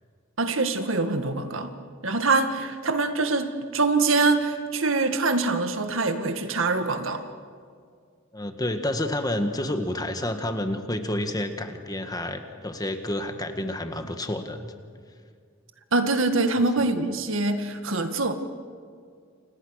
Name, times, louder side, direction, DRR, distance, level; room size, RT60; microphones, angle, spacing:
voice 1, 0.4-1.7 2.0-7.2 15.9-18.3, right 3 dB, 70° right, 7 dB, 1.9 m, -24 dB
voice 2, 8.3-14.7 16.6-16.7, left 1 dB, 20° left, 6 dB, 1.7 m, -29 dB
29.0 x 27.0 x 6.6 m, 2.1 s
head